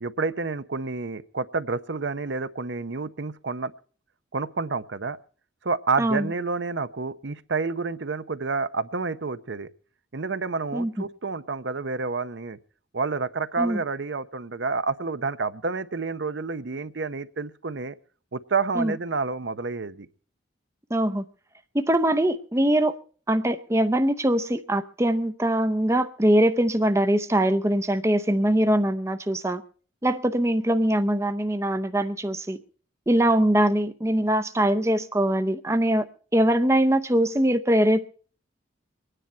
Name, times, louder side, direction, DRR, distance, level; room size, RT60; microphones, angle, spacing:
voice 1, 0.0-3.7 4.3-5.2 5.6-9.7 10.1-12.6 12.9-18.0 18.3-20.1, right 4 dB, 70° right, 0.8 m, -29 dB
voice 2, 20.9-21.2 21.7-23.0 23.3-29.6 30.0-32.6 33.1-36.1 36.3-38.1, right 1 dB, 15° right, 0.6 m, -22 dB
24.5 x 10.0 x 4.4 m
head